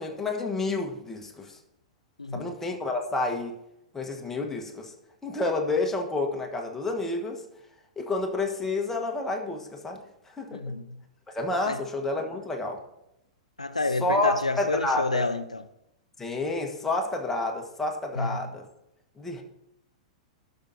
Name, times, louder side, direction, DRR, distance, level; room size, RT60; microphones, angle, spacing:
voice 1, 0.0-1.6 2.3-3.6 3.9-4.9 5.2-7.4 8.0-10.6 11.3-12.8 14.0-15.2 16.2-18.7 19.2-19.4, left 2 dB, 10° left, 1.3 m, -29 dB
voice 2, 10.5-11.0 11.7-11.8 13.6-15.6 18.2-18.5, left 3 dB, 90° left, 0.4 m, -29 dB
12.0 x 5.7 x 2.8 m
figure-of-eight pair, 100°, 3 cm